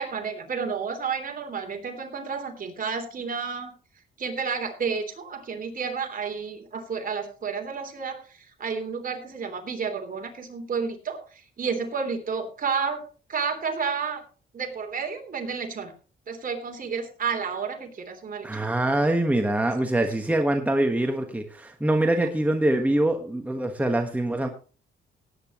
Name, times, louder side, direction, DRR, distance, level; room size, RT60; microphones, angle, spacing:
voice 1, 0.0-3.7 4.2-13.0 13.3-14.2 14.5-15.9 16.3-18.5, right 5 dB, 45° right, 4 dB, 3.3 m, -31 dB
voice 2, 18.4-24.5, right 1 dB, 5° right, 4 dB, 1.4 m, -24 dB
18.0 x 9.4 x 3.0 m, 0.37 s
cardioid pair, 90°, 20 cm